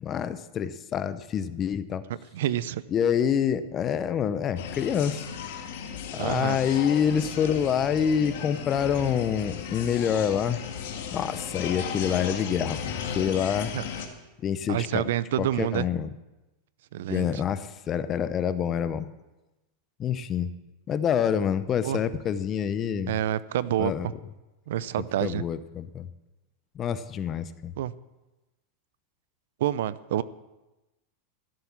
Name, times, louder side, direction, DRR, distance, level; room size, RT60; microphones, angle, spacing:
voice 1, 0.0-2.0 2.9-5.2 6.1-10.6 11.1-12.8 13.1-13.7 14.4-15.0 15.4-16.1 17.1-19.1 20.0-20.5 20.9-23.2 23.8-24.1 25.2-26.1 26.8-27.7, left 8 dB, 30° left, 13 dB, 0.8 m, -27 dB
voice 2, 2.1-2.8 6.2-6.6 13.7-13.8 14.7-15.9 16.9-17.4 21.8-22.0 23.1-24.1 24.7-25.4 27.8-27.9 29.6-30.2, right 12 dB, 75° right, 18 dB, 0.6 m, -28 dB
sound 1, 4.6-14.1, left 7 dB, 70° left, 2.0 m, -35 dB
15.5 x 7.8 x 7.3 m, 1.1 s
supercardioid pair, 125°, 0 cm